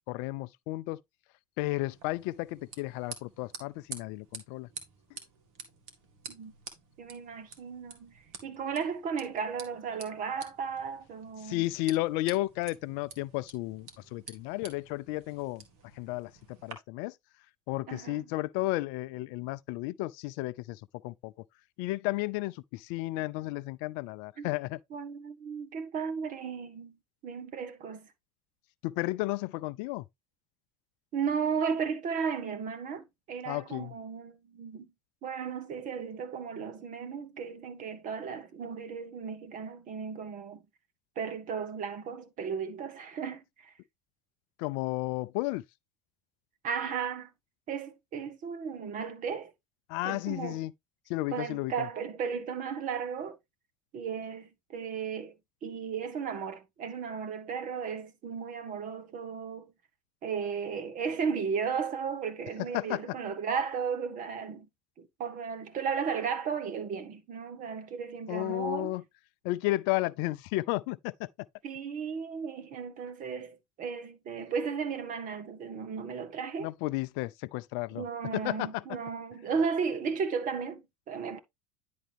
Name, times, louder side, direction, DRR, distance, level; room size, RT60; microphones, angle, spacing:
voice 1, 0.1-1.0 1.6-4.7 11.4-15.6 16.0-17.1 17.7-21.3 21.8-24.8 28.8-30.0 33.5-33.9 44.6-45.6 49.9-50.7 51.1-51.9 62.6-63.2 68.3-69.0 69.4-71.3 76.6-78.0 78.3-78.8, left 19 dB, 60° left, 0.4 m, -33 dB
sound 1, 1.9-16.7, right 5 dB, 65° right, 2.0 m, -49 dB
voice 2, 7.0-8.1 8.4-11.6 17.9-18.2 24.4-24.5 24.9-27.0 27.2-28.1 31.1-34.9 35.2-40.6 41.1-43.7 46.6-47.3 47.7-49.5 50.0-50.7 51.3-53.4 53.9-55.4 55.6-59.7 60.2-64.7 65.0-68.9 71.6-76.7 77.9-81.4, right 6 dB, 45° right, 1.5 m, -35 dB
10.0 x 4.1 x 3.4 m
hypercardioid pair, 80°, 19 cm